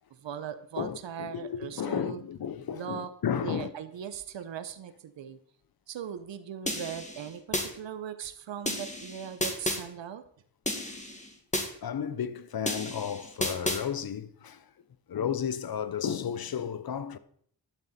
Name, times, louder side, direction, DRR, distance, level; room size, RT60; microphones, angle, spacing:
voice 1, 0.2-2.2 2.7-3.1 3.4-5.4 5.9-10.2, right 8 dB, 75° right, 1.0 m, -39 dB
voice 2, 0.8-3.7 10.8-11.0 11.8-14.7 15.1-17.2, left 8 dB, 55° left, 0.8 m, -33 dB
sound 1, 6.7-7.7 8.7-9.8 10.7-11.7 12.7-13.8, left 1 dB, 15° left, 2.0 m, -32 dB
11.5 x 7.2 x 4.3 m
cardioid pair, 55°, 45 cm